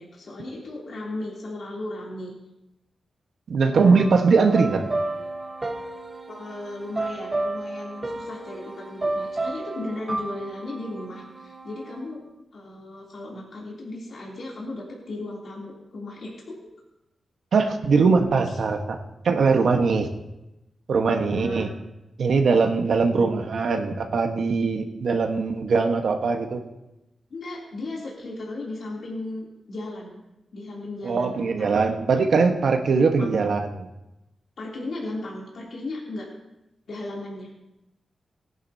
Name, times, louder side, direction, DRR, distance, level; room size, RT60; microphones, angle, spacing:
voice 1, 0.0-2.3 6.3-12.2 12.5-16.6 18.4-18.6 21.2-21.7 22.9-23.3 27.3-30.2 30.5-31.9 33.2-33.4 34.6-36.3 36.9-37.5, left 2 dB, 65° left, -4 dB, 3.0 m, -36 dB
voice 2, 3.5-4.8 17.5-19.0 19.2-20.1 20.9-21.7 22.2-26.6 31.0-33.9, right 4 dB, 70° right, 4 dB, 1.2 m, -21 dB
sound 1, 3.7-12.0, right 2 dB, 25° right, 1.1 m, -32 dB
19.0 x 11.0 x 2.8 m, 0.94 s
wide cardioid pair, 110°, 0 cm